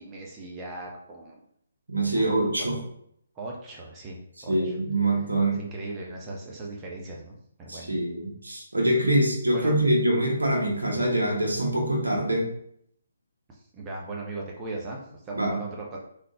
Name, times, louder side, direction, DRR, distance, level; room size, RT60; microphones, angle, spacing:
voice 1, 0.0-1.3 2.1-2.8 3.3-4.8 5.5-7.9 9.5-9.8 13.5-16.0, right 2 dB, 20° right, -2 dB, 0.6 m, -38 dB
voice 2, 1.9-2.8 4.5-5.6 7.7-12.5 15.3-15.6, right 1 dB, 75° right, -1 dB, 1.3 m, -24 dB
3.8 x 3.3 x 2.8 m, 0.70 s
figure-of-eight pair, 140°, 0 cm